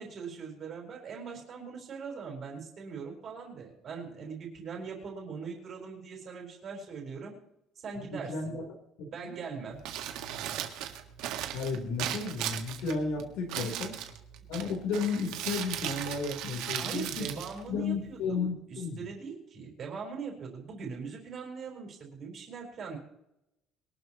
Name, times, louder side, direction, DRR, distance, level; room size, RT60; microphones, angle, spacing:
voice 1, 0.0-7.3 7.8-8.6 9.1-9.8 13.5-13.8 16.6-23.0, right 5 dB, 35° right, 0 dB, 4.7 m, -41 dB
voice 2, 8.3-8.6 9.0-9.4 11.5-13.9 14.5-17.4 17.7-19.1, left 4 dB, 85° left, 1 dB, 3.8 m, -33 dB
Crumpling crinkling, 9.7-18.3, right 11 dB, 75° right, 1.6 m, -38 dB
23.0 x 12.0 x 3.1 m, 0.81 s
cardioid pair, 180°, 0 cm